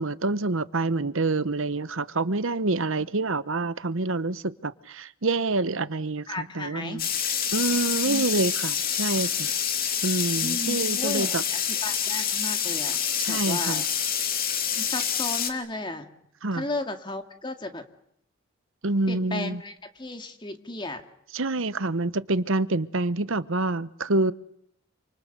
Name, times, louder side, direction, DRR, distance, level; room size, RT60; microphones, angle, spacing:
voice 1, 0.0-7.1 7.5-9.5 10.0-11.4 13.2-13.8 16.4-16.6 18.8-19.6 21.3-24.3, right 2 dB, 60° right, 1.0 m, -27 dB
voice 2, 6.3-7.0 8.0-8.2 10.4-13.0 13.3-13.8 14.8-16.1 16.5-17.8 19.1-21.0, left 2 dB, 20° left, 2.2 m, -34 dB
sound 1, 7.0-15.5, left 8 dB, 40° left, 2.9 m, -27 dB
28.0 x 26.5 x 6.7 m
head